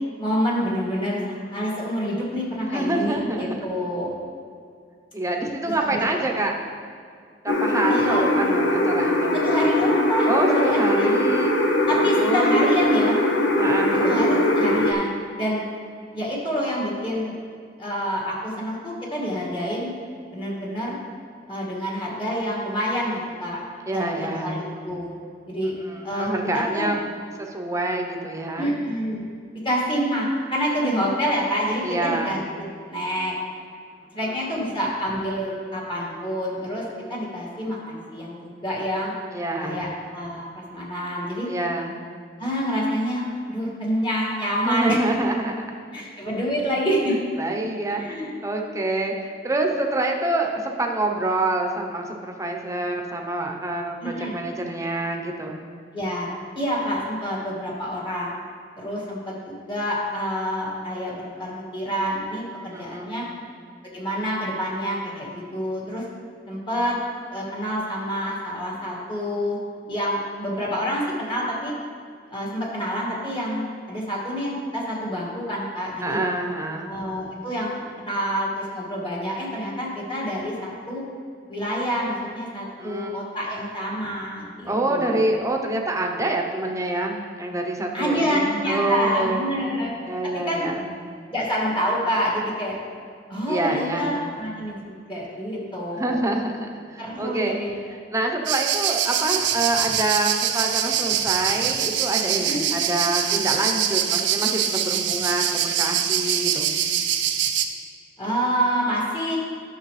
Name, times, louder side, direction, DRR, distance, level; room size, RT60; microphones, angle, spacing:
voice 1, 0.2-4.1 5.9-6.3 7.9-8.2 9.3-11.1 11.9-13.2 14.0-15.6 16.1-17.3 17.8-19.9 20.3-21.0 21.5-23.6 23.9-25.1 25.5-25.7 26.0-26.9 28.6-29.2 29.6-32.4 32.9-33.4 34.1-36.8 37.1-39.1 39.6-41.5 42.4-45.0 45.9-47.2 48.0-48.3 54.0-54.4 55.9-56.3 56.6-58.3 58.8-63.2 63.9-66.0 66.5-67.0 67.3-69.6 69.9-71.7 72.3-76.2 76.9-81.0 81.5-85.2 87.9-89.9 90.5-90.7 91.3-92.8 93.3-96.2 97.0-97.8 102.3-102.6 108.2-109.4, equal, 30° left, -4 dB, 2.1 m, -27 dB
voice 2, 2.7-3.7 5.1-6.5 7.4-9.4 10.3-11.5 11.8-12.6 13.6-14.4 23.9-24.6 25.8-27.0 27.4-28.7 31.8-32.4 34.2-34.4 39.3-39.9 41.5-41.9 44.6-45.7 47.4-55.6 62.7-63.3 76.0-76.9 82.8-83.2 84.6-89.7 90.1-90.9 93.5-94.1 95.9-97.6 98.1-106.7, right 2 dB, 15° right, 1 dB, 0.8 m, -26 dB
sound 1, 7.5-14.9, left 1 dB, 80° left, 0.8 m, -21 dB
sound 2, 98.4-107.6, right 9 dB, 75° right, 0.5 m, -24 dB
11.0 x 6.8 x 3.3 m, 2.2 s
head